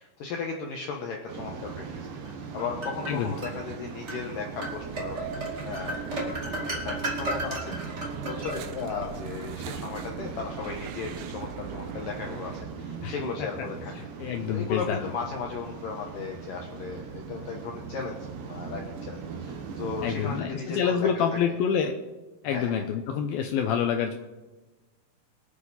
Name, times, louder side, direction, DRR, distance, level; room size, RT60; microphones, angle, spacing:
voice 1, 0.0-13.9 14.3-21.6 22.4-22.9, left 5 dB, 70° left, 1 dB, 2.2 m, -36 dB
Waves surf, 1.3-20.4, right 5 dB, 65° right, 2.4 m, -40 dB
sound 1, 2.2-3.6 4.1-4.2 4.6-9.0, right 1 dB, 30° right, 1.4 m, -34 dB
sound 2, 2.9-12.6, right 10 dB, 90° right, 2.2 m, -43 dB
voice 2, 13.8-15.1 20.0-22.0 22.4-24.1, left 7 dB, 90° left, 5 dB, 2.1 m, -27 dB
23.5 x 9.1 x 4.3 m, 1.2 s
omnidirectional pair, 5.3 m